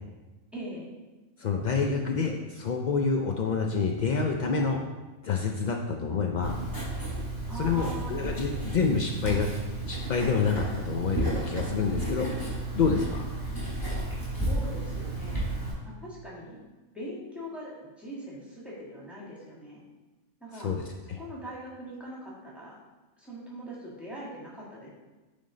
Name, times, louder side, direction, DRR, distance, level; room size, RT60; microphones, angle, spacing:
voice 1, 0.5-0.9 7.5-8.5 14.4-15.5 16.0-16.6 16.9-19.8 20.4-20.7 21.2-22.8 23.2-24.9, right 1 dB, ahead, -6 dB, 1.6 m, -41 dB
voice 2, 1.4-4.8 5.2-6.6 7.5-9.5 9.9-12.3 12.7-13.3 20.5-20.8 21.1-21.2, left 5 dB, 75° left, 2 dB, 0.4 m, -27 dB
Writing, 6.4-15.7, right 2 dB, 15° left, 2.2 m, -32 dB
8.6 x 3.6 x 3.8 m, 1.2 s
omnidirectional pair, 1.4 m